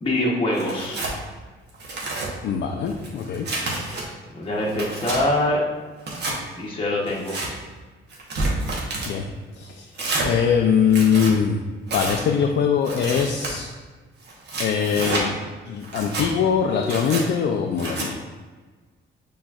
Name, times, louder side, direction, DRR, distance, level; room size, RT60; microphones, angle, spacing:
voice 1, 0.0-1.0 4.3-5.6 6.5-7.4, left 1 dB, 25° left, -4 dB, 0.9 m, -24 dB
Tearing, 0.6-1.1 1.7-2.3 2.9-4.0 4.5-5.2 6.0-6.4 7.1-7.5 8.1-9.1 9.9-10.3 10.8-11.3 11.9-12.2 12.8-13.5 14.2-15.2 15.8-16.3 16.8-17.2 17.8-18.1, right 2 dB, 60° right, 1.1 m, -29 dB
voice 2, 2.4-3.5 9.1-9.2 9.6-9.9 10.2-11.6 11.9-13.7 14.6-15.4 15.7-18.2, left 7 dB, 65° left, 2 dB, 0.4 m, -22 dB
6.1 x 3.1 x 2.4 m, 1.3 s
cardioid pair, 90°, 20 cm